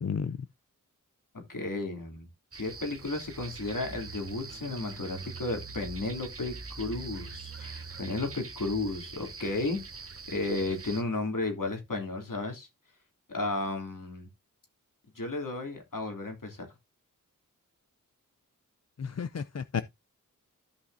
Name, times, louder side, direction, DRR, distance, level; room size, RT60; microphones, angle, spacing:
voice 1, 0.0-0.4 19.0-19.8, left 6 dB, 50° left, 0.5 m, -32 dB
voice 2, 1.3-2.3 2.5-12.7 13.3-14.3 15.1-16.7 19.7-19.8, left 2 dB, 75° left, 2.9 m, -34 dB
sound 1, 2.5-11.0, right 4 dB, 45° right, 0.8 m, -43 dB
13.5 x 5.7 x 2.6 m
wide cardioid pair, 45°, 33 cm